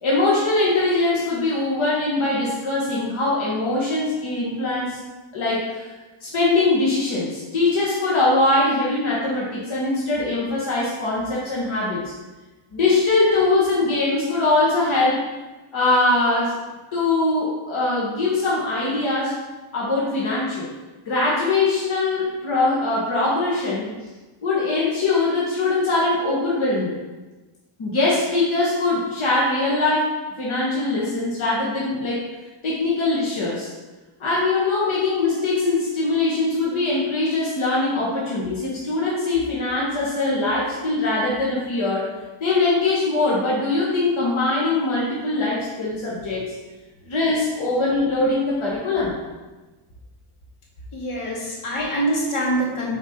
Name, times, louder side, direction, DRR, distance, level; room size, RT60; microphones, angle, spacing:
voice 1, 0.0-5.0 5.3-5.9 6.2-12.1 12.7-15.2 15.7-16.6 16.9-19.4 19.7-20.7 21.1-23.9 24.4-26.9 27.8-32.2 32.6-33.7 34.2-42.1 42.4-46.5 47.1-49.1, left 2 dB, 70° left, -5 dB, 1.7 m, -22 dB
voice 2, 50.9-52.9, right 1 dB, 90° left, -4 dB, 2.2 m, -24 dB
7.7 x 4.7 x 4.4 m, 1.2 s
wide cardioid pair, 165°, 49 cm